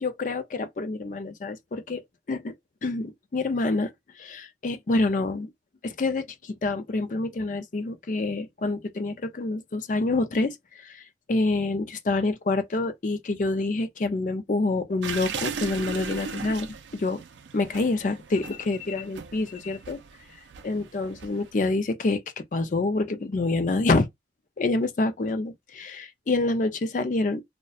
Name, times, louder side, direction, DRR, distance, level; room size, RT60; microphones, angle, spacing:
voice 1, 0.0-2.0 2.3-2.5 2.8-5.5 5.8-17.2 17.5-20.0 20.6-24.1 24.6-27.4, left 3 dB, 45° left, 0.4 m, -27 dB
sound 1, 15.0-21.5, right 6 dB, 90° right, 0.4 m, -38 dB
2.6 x 2.1 x 2.3 m
head